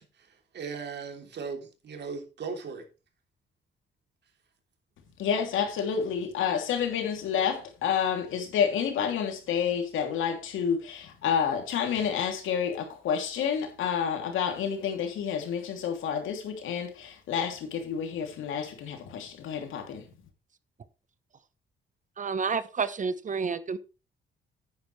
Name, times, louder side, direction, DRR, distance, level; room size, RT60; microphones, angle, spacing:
voice 1, 0.0-2.9, right 5 dB, 60° right, 3.2 m, -38 dB
voice 2, 5.2-20.1, left 7 dB, 85° left, 2.9 m, -29 dB
voice 3, 22.2-23.8, right 5 dB, 40° right, 1.0 m, -29 dB
10.5 x 9.5 x 3.3 m
cardioid pair, 90°, 20 cm